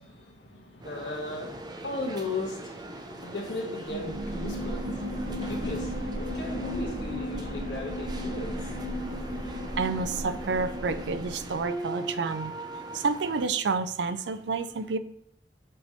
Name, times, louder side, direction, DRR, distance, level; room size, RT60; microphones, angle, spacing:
voice 1, 0.0-8.9, left 2 dB, 85° left, -2 dB, 1.9 m, -37 dB
sound 1, 0.8-13.5, right 2 dB, 25° right, 0.6 m, -41 dB
sound 2, 3.8-11.7, equal, 50° right, 2.1 m, -34 dB
voice 2, 9.8-12.5 12.9-15.0, right 4 dB, 85° right, 11 dB, 0.5 m, -29 dB
7.6 x 3.5 x 4.0 m, 0.72 s
head